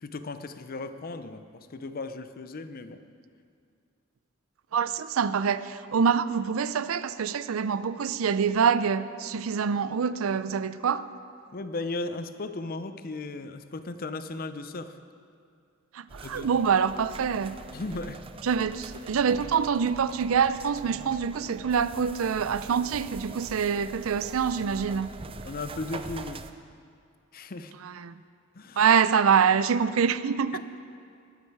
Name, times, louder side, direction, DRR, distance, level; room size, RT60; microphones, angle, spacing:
voice 1, 0.0-3.0 11.5-15.0 16.2-16.6 17.7-18.3 25.4-26.5 27.3-27.8 28.5-28.9, left 3 dB, 45° left, 0.6 m, -36 dB
voice 2, 4.7-11.1 15.9-17.6 18.4-25.1 27.8-28.1 28.8-30.6, right 6 dB, 90° right, 0.5 m, -25 dB
sound 1, 16.1-26.5, right 3 dB, 25° right, 0.5 m, -43 dB
20.0 x 8.8 x 4.6 m
head